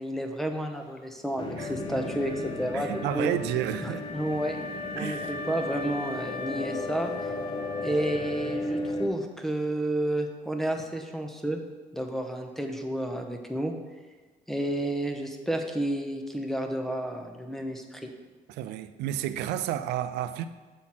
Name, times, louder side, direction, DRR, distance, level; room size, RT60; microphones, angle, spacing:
voice 1, 0.0-3.3 3.8-4.6 4.9-7.3 7.8-11.6 11.9-13.7 14.5-18.1, right 1 dB, ahead, 0.8 m, -31 dB
sound 1, 1.4-9.1, left 1 dB, 30° left, 0.9 m, -36 dB
Wind instrument woodwind instrument, 1.5-9.1, left 4 dB, 70° left, 0.7 m, -39 dB
voice 2, 1.6-2.0 2.7-4.0 5.0-5.3 18.5-20.4, right 11 dB, 80° right, 0.4 m, -31 dB
7.4 x 4.0 x 5.9 m
cardioid pair, 110°, 17 cm